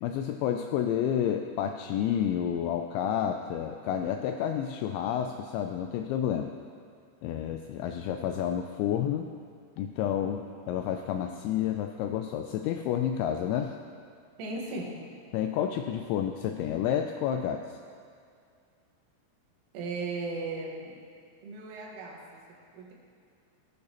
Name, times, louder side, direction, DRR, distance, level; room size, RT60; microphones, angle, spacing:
voice 1, 0.0-6.5 7.2-9.3 9.8-13.8 15.3-17.8, left 9 dB, 85° left, 5 dB, 2.6 m, -30 dB
voice 2, 14.4-15.1 19.7-21.0 21.4-22.9, right 3 dB, 80° right, -1 dB, 4.0 m, -37 dB
17.0 x 12.5 x 3.0 m, 2.3 s
omnidirectional pair, 5.7 m